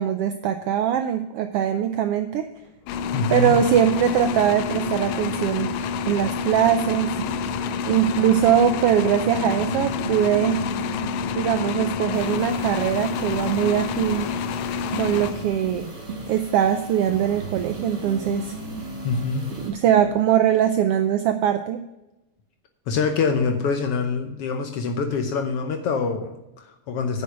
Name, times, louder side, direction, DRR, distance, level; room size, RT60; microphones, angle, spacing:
voice 1, 0.0-2.5 3.3-7.1 7.9-10.6 11.3-14.3 15.0-15.9 16.3-18.5 19.6-21.8, right 9 dB, 85° right, 8 dB, 1.3 m, -21 dB
sound 1, 2.9-15.9, left 6 dB, 85° left, 2.0 m, -28 dB
voice 2, 3.1-3.6 19.0-19.5 22.9-27.2, left 4 dB, 65° left, 6 dB, 1.6 m, -25 dB
sound 2, 7.2-8.6 9.3-12.5 14.9-16.3 17.1-20.3, right 2 dB, 65° right, 0.6 m, -36 dB
sound 3, 12.1-19.7, right 2 dB, 30° right, 3.1 m, -41 dB
9.3 x 6.7 x 6.8 m, 0.94 s
omnidirectional pair, 3.3 m